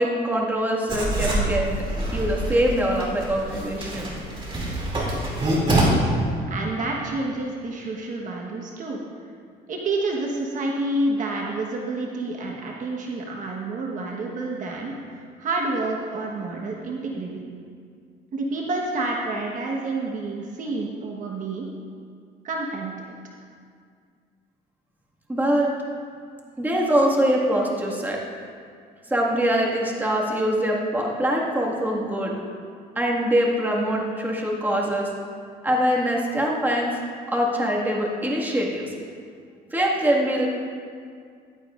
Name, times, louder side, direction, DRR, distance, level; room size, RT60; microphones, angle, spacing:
voice 1, 0.0-1.8 2.1-4.1 25.3-25.7 26.6-28.2 29.1-32.3 33.0-35.1 35.6-37.0 37.3-38.9 39.7-40.5, equal, 10° right, -3 dB, 1.8 m, -23 dB
Writing, 0.9-5.8, right 1 dB, 30° right, 2.7 m, -26 dB
voice 2, 5.7-6.1 6.5-9.0 9.7-17.5 18.3-21.7 22.4-23.1, right 2 dB, 50° right, -1 dB, 1.3 m, -29 dB
15.0 x 11.0 x 2.5 m, 2.2 s
cardioid pair, 110°, 17 cm